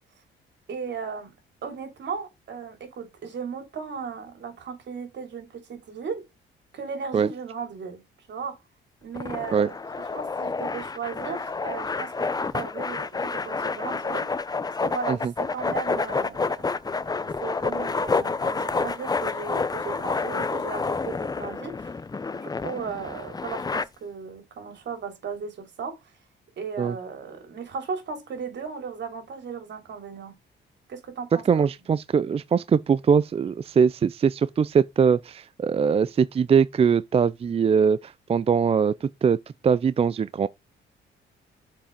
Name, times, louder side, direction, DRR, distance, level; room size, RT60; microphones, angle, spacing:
voice 1, 0.7-1.3 1.6-6.2 6.7-8.0 8.3-8.6 9.0-9.8 10.1-14.3 14.8-21.9 22.3-26.0 26.6-30.3 30.9-31.6, right 6 dB, 65° right, 3.0 m, -36 dB
sound 1, 9.1-23.8, left 4 dB, 20° left, 0.6 m, -29 dB
voice 2, 31.4-39.4 39.6-40.5, right 6 dB, 30° right, 0.4 m, -22 dB
7.3 x 4.8 x 5.1 m
cardioid pair, 90°, 20 cm